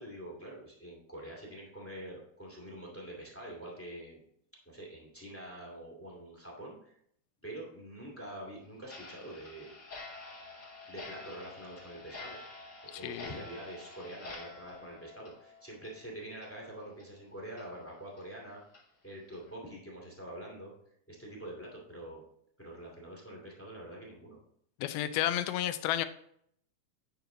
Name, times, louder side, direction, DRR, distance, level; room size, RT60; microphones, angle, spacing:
voice 1, 0.0-4.2 4.6-6.9 7.4-9.7 10.9-12.4 12.8-18.6 19.0-20.7 21.1-22.2 22.6-24.4, right 1 dB, 5° left, -3 dB, 1.4 m, -45 dB
Clock, 8.8-16.1 16.4-16.5 17.0-17.1 17.6-17.7 18.2-18.3 18.7-18.8 19.3-19.5, left 3 dB, 30° left, 3.4 m, -48 dB
voice 2, 13.0-13.3 24.8-26.1, left 12 dB, 85° left, 11 dB, 2.5 m, -31 dB
9.6 x 6.3 x 3.9 m, 0.68 s
omnidirectional pair, 4.4 m